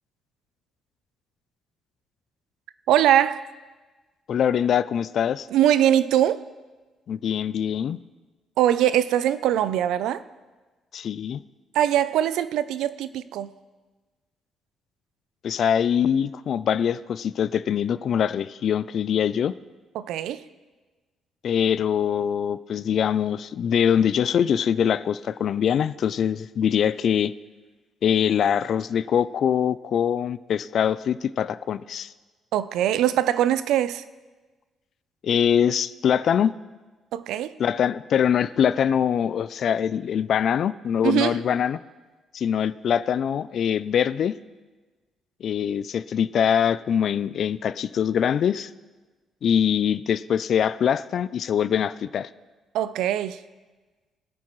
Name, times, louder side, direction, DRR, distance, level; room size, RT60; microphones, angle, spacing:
voice 1, 2.9-3.4 5.5-6.4 8.6-10.2 11.7-13.5 19.9-20.4 32.5-34.0 37.1-37.6 41.0-41.4 52.7-53.4, right 11 dB, 85° right, 0.5 m, -22 dB
voice 2, 4.3-5.5 7.1-8.0 10.9-11.4 15.4-19.5 21.4-27.3 28.0-32.1 35.2-36.5 37.6-41.8 42.3-44.3 45.4-48.7 49.4-52.3, left 8 dB, 65° left, 0.3 m, -23 dB
21.5 x 8.6 x 3.1 m
cardioid pair, 90°, 0 cm